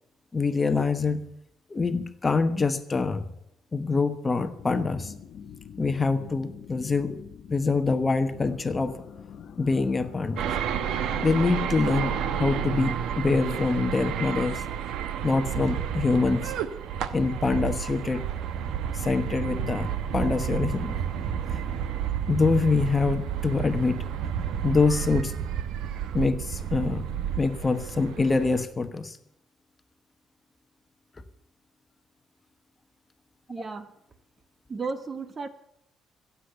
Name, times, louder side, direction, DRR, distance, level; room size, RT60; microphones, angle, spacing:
voice 1, 0.3-1.3 1.7-3.2 3.7-5.1 5.8-7.2 7.5-9.0 9.6-10.5 11.2-14.6 15.2-16.6 17.1-18.2 18.9-21.0 21.5-21.6 22.3-24.1 24.6-25.4 26.1-29.2, left 4 dB, 25° left, 9 dB, 1.1 m, -25 dB
sound 1, 4.6-12.6, left 8 dB, 60° left, 0.9 m, -44 dB
sound 2, 10.4-28.6, right 8 dB, 85° right, 1.1 m, -31 dB
voice 2, 33.5-33.9 34.7-35.5, right 4 dB, 35° right, 12 dB, 1.2 m, -34 dB
15.5 x 8.4 x 8.0 m, 0.79 s
cardioid pair, 115°, 0 cm